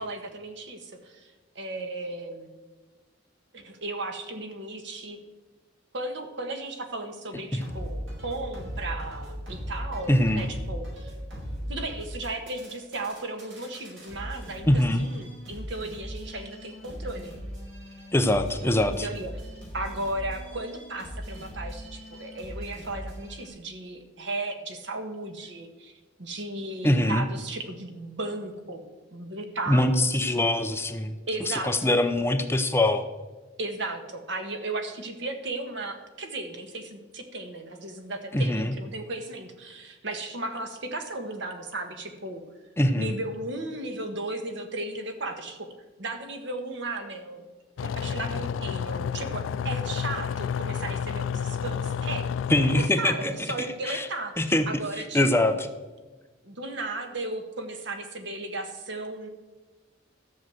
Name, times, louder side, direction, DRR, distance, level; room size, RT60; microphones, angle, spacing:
voice 1, 0.0-2.5 3.5-5.2 5.9-11.1 11.7-17.3 18.6-19.4 19.7-28.8 29.1-30.2 31.3-31.9 33.6-42.4 43.0-45.7 46.0-47.4 47.8-52.2 52.7-55.6 56.4-59.3, right 2 dB, 70° right, 5 dB, 1.5 m, -35 dB
sound 1, 7.6-23.5, equal, 85° right, 5.2 m, -39 dB
voice 2, 10.1-10.5 14.7-15.1 18.1-19.1 26.8-27.2 29.7-31.2 31.5-33.1 38.3-38.7 42.8-43.2 52.5-53.3 53.6-54.1 54.4-54.8 55.1-55.5, left 1 dB, 15° left, 8 dB, 0.6 m, -23 dB
sound 2, 47.8-52.9, left 7 dB, 85° left, 0.3 m, -30 dB
13.0 x 6.5 x 7.7 m, 1.2 s
head